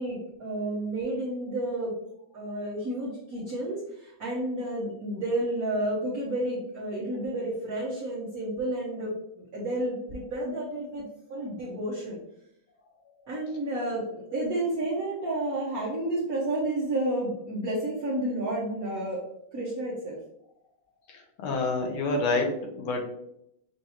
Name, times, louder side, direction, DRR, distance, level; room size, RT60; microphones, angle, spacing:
voice 1, 0.0-1.9 2.3-9.1 9.5-11.0 11.3-12.2 13.3-19.2 19.5-20.2, right 1 dB, 50° right, -8 dB, 1.3 m, -31 dB
voice 2, 21.1-23.0, left 3 dB, 80° left, 2 dB, 1.7 m, -28 dB
6.2 x 2.5 x 2.8 m, 0.76 s
omnidirectional pair, 2.3 m